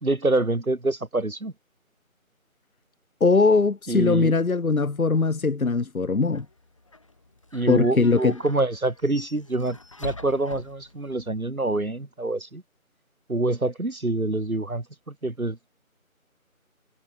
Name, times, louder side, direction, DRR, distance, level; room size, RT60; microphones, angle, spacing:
voice 1, 0.0-1.5 3.9-4.3 7.5-12.6 13.3-15.6, right 2 dB, 75° right, 2.3 m, -26 dB
voice 2, 3.2-6.5 7.7-8.4, left 4 dB, 75° left, 1.1 m, -21 dB
sound 1, 6.3-11.3, left 2 dB, 20° left, 3.4 m, -43 dB
figure-of-eight pair, 170°, 43 cm